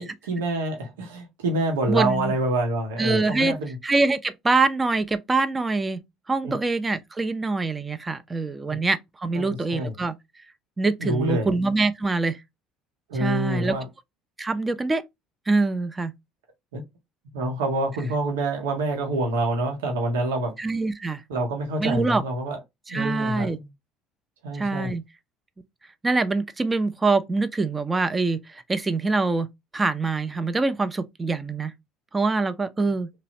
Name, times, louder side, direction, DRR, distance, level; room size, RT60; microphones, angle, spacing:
voice 1, 0.0-3.8 6.4-6.5 9.4-9.9 11.0-11.5 13.1-13.9 16.7-16.8 17.3-20.6 21.3-22.6 22.9-23.7 24.4-24.9, right 2 dB, 85° right, 0.8 m, -26 dB
voice 2, 1.9-2.3 3.0-3.5 3.8-6.0 6.3-10.2 10.8-12.4 13.1-13.7 14.4-15.0 15.5-16.1 20.6-21.2 21.8-22.2 22.9-23.6 24.5-25.0 26.0-31.7 32.1-33.1, right 3 dB, 20° right, 0.5 m, -24 dB
3.2 x 2.0 x 2.6 m
hypercardioid pair, 70°, 0 cm